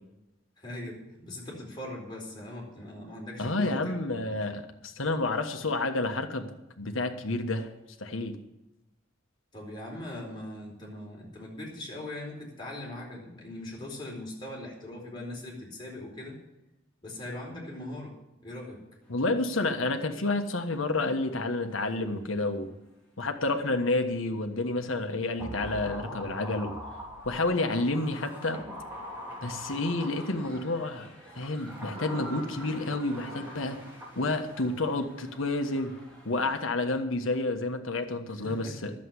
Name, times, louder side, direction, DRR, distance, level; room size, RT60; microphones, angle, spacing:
voice 1, 0.6-4.0 9.5-16.4 17.0-18.2 18.4-18.8 38.4-38.9, left 1 dB, 25° left, -3 dB, 4.3 m, -40 dB
voice 2, 3.4-6.5 6.8-7.7 8.0-8.3 19.1-22.7 23.2-26.8 27.2-28.6 29.4-31.1 31.4-33.8 34.2-36.0 36.2-38.9, left 2 dB, 80° left, 6 dB, 1.4 m, -29 dB
sound 1, 19.0-36.7, right 1 dB, 5° left, 3.2 m, -54 dB
sound 2, 25.4-30.9 31.5-34.7 35.0-35.1, equal, 10° right, 3.3 m, -42 dB
11.5 x 7.6 x 9.7 m, 0.93 s
head